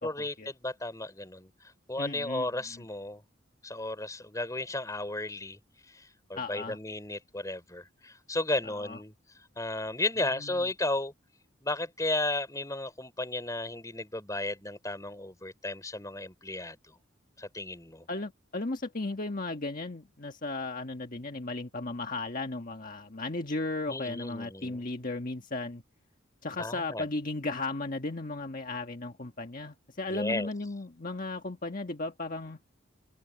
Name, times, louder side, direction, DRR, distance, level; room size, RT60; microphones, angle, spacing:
voice 1, 0.0-3.2 3.6-5.6 5.9-9.1 9.6-11.1 11.6-16.8 17.4-18.1 23.9-24.8 26.6-27.1 30.1-30.5, left 2 dB, 15° left, 3.7 m, -34 dB
voice 2, 2.0-2.8 6.3-6.8 8.6-9.0 10.3-10.6 18.1-25.8 26.4-32.6, left 2 dB, 45° left, 1.5 m, -35 dB
open air
head